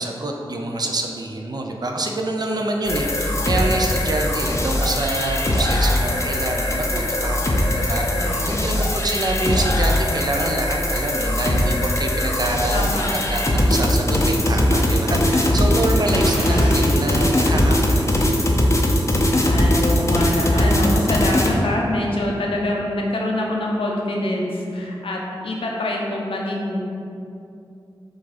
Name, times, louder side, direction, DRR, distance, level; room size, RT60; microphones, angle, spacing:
voice 1, 0.0-13.0 13.3-18.1, right 2 dB, 45° right, 2 dB, 0.4 m, -26 dB
sound 1, 2.9-21.5, left 1 dB, 30° left, 0.5 m, -20 dB
voice 2, 12.7-13.1 16.1-16.7 19.1-26.8, left 1 dB, 80° left, -2 dB, 0.6 m, -25 dB
sound 2, 15.5-19.3, equal, 10° right, 0.7 m, -39 dB
sound 3, 16.2-20.8, equal, 80° right, 0.7 m, -36 dB
4.8 x 2.4 x 4.1 m, 2.6 s
wide cardioid pair, 100°, 9 cm